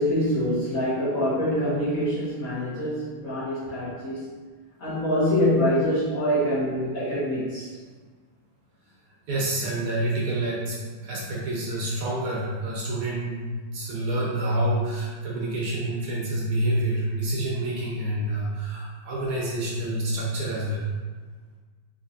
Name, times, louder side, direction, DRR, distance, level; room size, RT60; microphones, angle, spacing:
voice 1, 0.0-4.4 4.8-7.7, equal, 55° left, -10 dB, 1.5 m, -25 dB
voice 2, 9.3-20.8, right 1 dB, 70° right, -5 dB, 1.2 m, -28 dB
3.9 x 2.7 x 2.7 m, 1.4 s
omnidirectional pair, 2.0 m